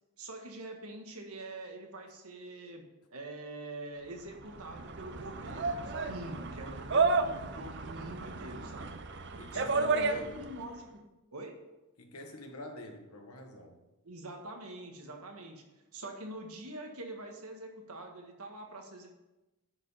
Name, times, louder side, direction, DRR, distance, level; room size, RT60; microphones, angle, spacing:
voice 1, 0.2-2.8 3.1-9.0 9.5-11.6 14.0-15.6 15.9-19.1, right 1 dB, 85° right, 3 dB, 1.5 m, -44 dB
sound 1, 4.3-10.6, right 3 dB, 50° right, 0.6 m, -32 dB
voice 2, 9.4-10.4 12.0-13.8, left 1 dB, 85° left, 4 dB, 1.4 m, -46 dB
10.5 x 5.1 x 5.6 m, 1.0 s
head